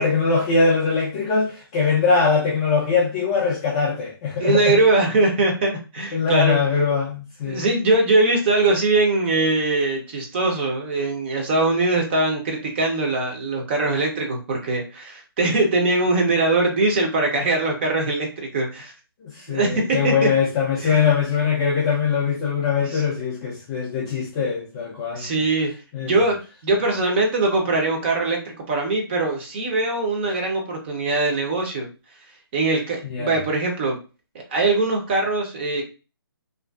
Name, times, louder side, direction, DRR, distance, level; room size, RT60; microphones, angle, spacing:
voice 1, 0.0-4.8 6.1-7.6 19.2-25.4 25.9-26.1 33.1-33.4, left 5 dB, 15° left, 0.3 m, -22 dB
voice 2, 4.4-6.6 7.4-18.9 19.5-20.3 20.8-21.0 22.9-23.0 25.1-25.7 26.0-31.9 32.5-34.0 34.5-35.8, right 2 dB, 25° right, 0.6 m, -21 dB
2.5 x 2.2 x 2.2 m
hypercardioid pair, 160°, 13 cm